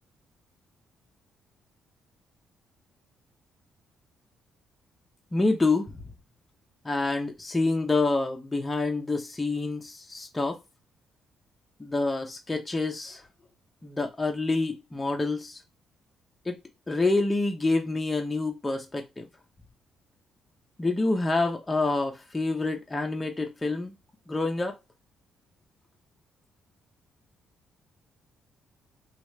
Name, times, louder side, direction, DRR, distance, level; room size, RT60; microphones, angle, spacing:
voice 1, 5.3-5.9 6.8-10.6 11.8-13.2 13.8-15.6 16.5-16.6 16.9-19.2 20.8-23.9 24.3-24.8, left 3 dB, 20° left, 0.7 m, -27 dB
3.0 x 2.4 x 3.2 m
cardioid pair, 90°, 0 cm